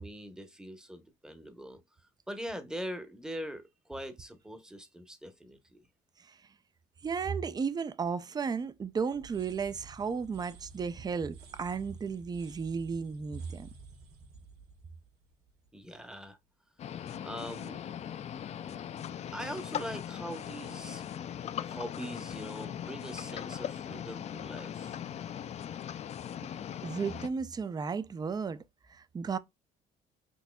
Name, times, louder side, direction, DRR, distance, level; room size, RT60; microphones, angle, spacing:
voice 1, 0.0-1.8 2.3-5.9 15.7-16.4 17.2-17.8 19.3-21.4 21.6-25.0, equal, 5° right, 0.9 m, -42 dB
voice 2, 7.0-13.7 26.8-28.6 28.9-29.4, right 5 dB, 25° right, 0.4 m, -34 dB
sound 1, 9.1-16.0, right 4 dB, 75° right, 1.3 m, -53 dB
sound 2, 16.8-27.3, left 9 dB, 40° left, 0.4 m, -39 dB
6.1 x 2.7 x 2.2 m
cardioid pair, 110°, 17 cm